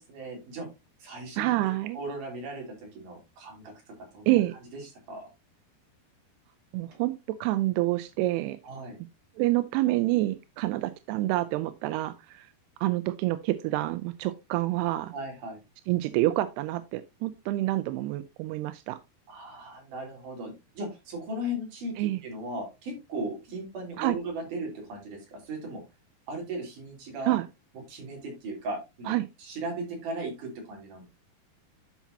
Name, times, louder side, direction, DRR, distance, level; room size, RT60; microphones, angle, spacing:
voice 1, 0.1-0.7 1.0-2.7 2.9-3.7 4.1-4.3 5.1-5.3 8.6-9.0 15.1-15.6 19.3-25.8 26.3-27.3 27.9-29.1 29.4-31.0, right 1 dB, 55° right, 4.5 m, -37 dB
voice 2, 1.4-2.0 4.3-4.6 6.7-7.1 7.4-8.6 9.4-12.5 12.8-15.1 15.9-19.0 22.0-22.2 24.0-24.2 27.3-27.5 29.1-29.3, right 17 dB, 90° right, 2.6 m, -27 dB
11.5 x 5.9 x 2.7 m
omnidirectional pair, 4.6 m